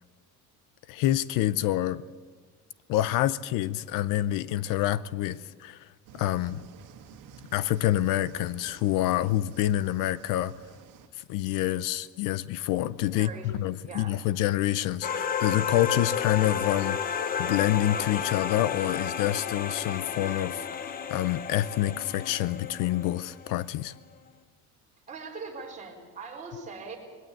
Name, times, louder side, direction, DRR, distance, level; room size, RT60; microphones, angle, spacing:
voice 1, 0.9-2.0 2.9-5.9 6.1-6.6 7.5-10.5 11.1-23.9, left 14 dB, 65° left, 17 dB, 0.6 m, -27 dB
sound 1, 6.1-11.1, right 7 dB, 70° right, 1.9 m, -51 dB
voice 2, 13.1-14.1 25.1-27.0, right 4 dB, 20° right, -1 dB, 4.1 m, -41 dB
sound 2, 15.0-23.6, left 7 dB, 25° left, 0.7 m, -32 dB
21.5 x 17.5 x 7.8 m, 1.5 s
cardioid pair, 175°, 35 cm